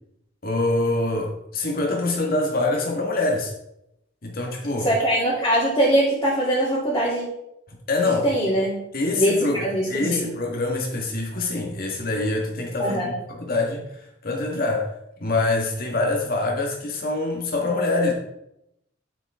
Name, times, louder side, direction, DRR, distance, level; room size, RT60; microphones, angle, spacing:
voice 1, 0.4-3.5 4.2-4.9 7.7-8.3 8.9-14.9 15.2-18.1, left 2 dB, 50° left, 0 dB, 1.7 m, -25 dB
voice 2, 4.8-7.2 8.2-8.8 9.1-9.4 9.6-10.3 12.8-13.1, right 1 dB, 20° left, -9 dB, 2.8 m, -22 dB
9.0 x 7.9 x 3.6 m, 0.81 s
head